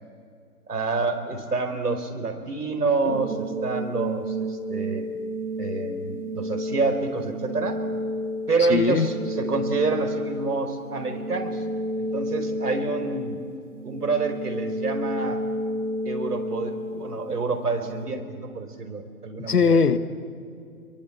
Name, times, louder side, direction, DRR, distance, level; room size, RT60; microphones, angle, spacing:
voice 1, 0.7-5.1 5.6-7.8 8.5-11.6 12.0-13.4 13.8-15.4 16.0-19.8, right 4 dB, 85° right, 6 dB, 4.8 m, -28 dB
sound 1, 3.0-18.1, equal, 50° right, 2.7 m, -31 dB
voice 2, 8.6-9.1 19.4-20.0, left 5 dB, 85° left, 12 dB, 1.9 m, -20 dB
29.0 x 23.0 x 8.7 m, 2.3 s
hypercardioid pair, 180°, 45 cm